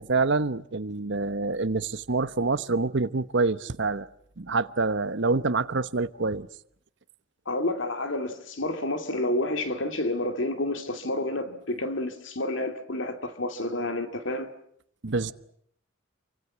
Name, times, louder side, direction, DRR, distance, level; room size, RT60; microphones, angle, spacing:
voice 1, 0.0-4.1 4.4-6.5 15.0-15.3, right 3 dB, 65° right, 1.0 m, -26 dB
voice 2, 7.5-14.5, left 1 dB, 70° left, 2.4 m, -29 dB
28.0 x 24.5 x 7.5 m
head